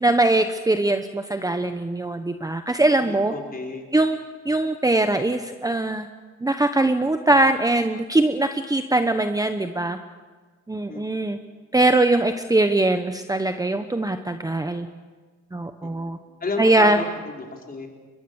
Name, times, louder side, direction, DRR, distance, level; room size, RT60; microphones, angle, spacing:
voice 1, 0.0-3.3 3.9-4.2 4.5-6.1 6.4-10.0 10.7-11.4 11.7-14.9 15.5-16.2 16.6-17.0, right 2 dB, 10° right, 8 dB, 1.0 m, -21 dB
voice 2, 2.9-3.9 10.9-11.0 15.8-15.9 16.4-17.9, left 3 dB, 30° left, 0 dB, 4.9 m, -32 dB
22.5 x 21.5 x 7.1 m, 1.4 s
cardioid pair, 90°, 30 cm